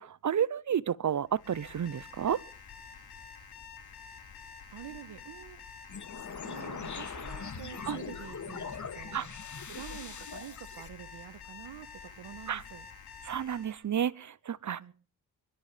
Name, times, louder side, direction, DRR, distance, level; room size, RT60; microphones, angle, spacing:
voice 1, 0.0-2.4 7.9-8.0 9.1-9.3 12.5-12.6 13.2-14.9, right 9 dB, 45° right, 0.8 m, -31 dB
Alarm, 1.3-13.8, left 6 dB, 60° left, 4.8 m, -49 dB
voice 2, 4.7-5.6 6.4-9.3 9.7-12.9 14.8-14.9, right 11 dB, 75° right, 1.6 m, -47 dB
sound 1, 5.9-10.9, left 6 dB, 45° left, 2.4 m, -41 dB
24.0 x 13.0 x 3.4 m
supercardioid pair, 55°, 42 cm